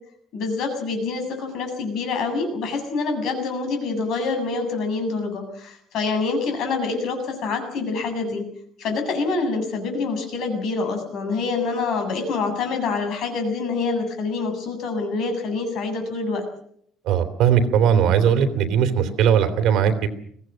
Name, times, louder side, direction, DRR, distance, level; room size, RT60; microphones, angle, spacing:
voice 1, 0.3-8.4 8.8-16.5, left 4 dB, 55° left, 6 dB, 7.6 m, -26 dB
voice 2, 17.1-20.1, right 8 dB, 60° right, 8 dB, 3.2 m, -19 dB
24.0 x 18.0 x 7.6 m, 0.66 s
cardioid pair, 165°, 0 cm